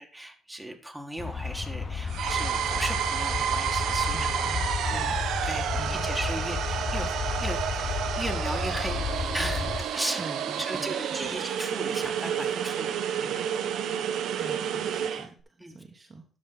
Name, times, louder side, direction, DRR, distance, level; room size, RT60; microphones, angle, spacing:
voice 1, 0.0-4.4 4.9-5.1 5.4-10.2 10.6-13.7 15.2-15.3 15.6-15.8, right 1 dB, 5° right, 3 dB, 1.7 m, -37 dB
sound 1, 1.2-9.8, left 5 dB, 40° left, 0.8 m, -32 dB
sound 2, 2.1-15.3, right 9 dB, 80° right, 0.9 m, -30 dB
voice 2, 4.1-5.2 5.7-6.1 10.2-11.3 14.4-16.2, right 2 dB, 30° right, 3 dB, 1.3 m, -44 dB
12.5 x 5.2 x 4.0 m, 0.40 s
cardioid pair, 90°, 0 cm